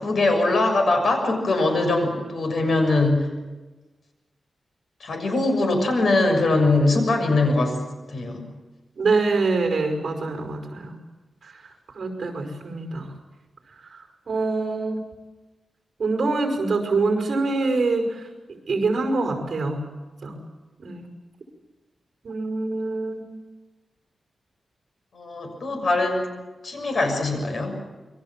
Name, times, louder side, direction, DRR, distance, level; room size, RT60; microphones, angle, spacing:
voice 1, 0.0-3.3 5.0-7.8 8.1-8.4 25.1-26.3 26.6-27.7, left 2 dB, 55° left, 4 dB, 6.6 m, -22 dB
voice 2, 9.0-10.9 11.4-11.6 11.9-13.1 13.8-15.0 16.0-19.8 20.2-20.4 20.8-21.1 22.2-23.2, right 3 dB, 50° right, 5 dB, 5.4 m, -25 dB
28.0 x 22.5 x 7.4 m, 1.2 s
wide cardioid pair, 165°, 0 cm